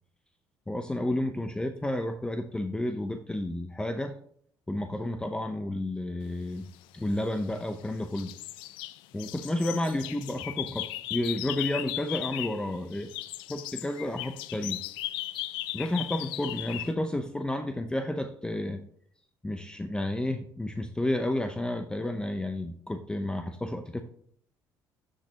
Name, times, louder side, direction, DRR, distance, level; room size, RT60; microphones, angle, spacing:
voice 1, 0.7-4.2 4.7-6.7 6.9-8.3 9.1-13.1 13.5-14.8 15.7-18.8 19.4-24.0, left 1 dB, 10° left, 7 dB, 0.7 m, -31 dB
sound 1, 7.0-7.8 8.1-12.7 12.9-16.9, left 16 dB, 85° left, 0.4 m, -37 dB
11.5 x 6.4 x 2.8 m, 0.63 s
supercardioid pair, 85°, 8 cm